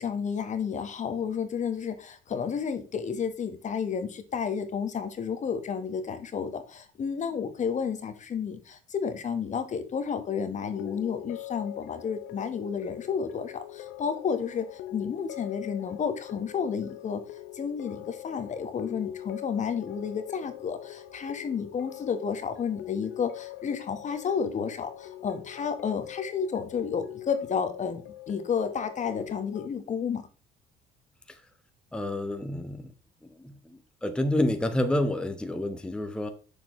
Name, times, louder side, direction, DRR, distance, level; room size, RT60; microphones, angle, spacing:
voice 1, 0.0-17.2 17.5-30.2, left 6 dB, 45° left, 1.1 m, -31 dB
sound 1, 10.6-29.7, left 14 dB, 75° left, 0.7 m, -43 dB
voice 2, 31.9-32.9 33.4-36.3, left 1 dB, 5° left, 0.8 m, -29 dB
6.8 x 6.3 x 3.0 m
supercardioid pair, 85°, 18 cm